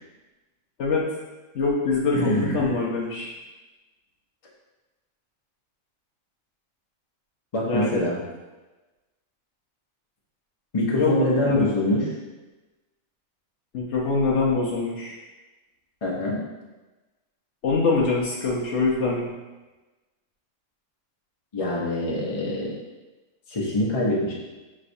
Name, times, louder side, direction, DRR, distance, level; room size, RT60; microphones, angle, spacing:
voice 1, 1.5-3.3 7.7-8.0 11.0-11.7 13.7-15.2 17.6-19.3, left 3 dB, 65° left, -4 dB, 1.0 m, -24 dB
voice 2, 2.1-2.8 7.5-8.2 10.7-12.1 16.0-16.4 21.5-22.7 23.5-24.3, left 1 dB, 30° left, -4 dB, 0.8 m, -24 dB
5.7 x 3.1 x 2.6 m, 1.1 s
omnidirectional pair, 1.4 m